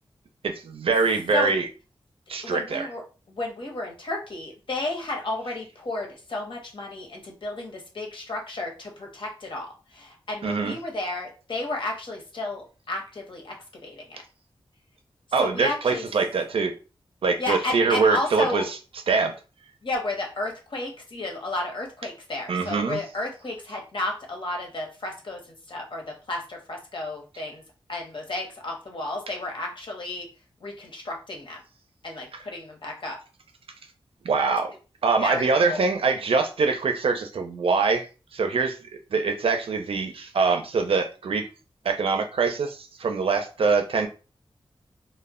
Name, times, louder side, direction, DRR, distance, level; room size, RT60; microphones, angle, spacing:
voice 1, 0.4-1.7 2.3-2.9 10.4-10.8 15.3-16.7 17.2-18.8 19.1-19.3 22.5-23.0 34.2-34.7 35.0-38.1 38.3-38.8 39.1-41.4 41.8-44.1, right 4 dB, 75° right, 6 dB, 0.4 m, -23 dB
voice 2, 2.4-3.0 3.3-13.5 13.8-14.2 15.4-16.1 17.4-18.7 19.8-25.4 25.7-27.6 27.9-30.3 30.6-31.6 32.0-33.2 35.2-35.9, left 2 dB, 60° left, 1 dB, 0.9 m, -32 dB
2.1 x 2.1 x 3.5 m, 0.34 s
wide cardioid pair, 85°, 10 cm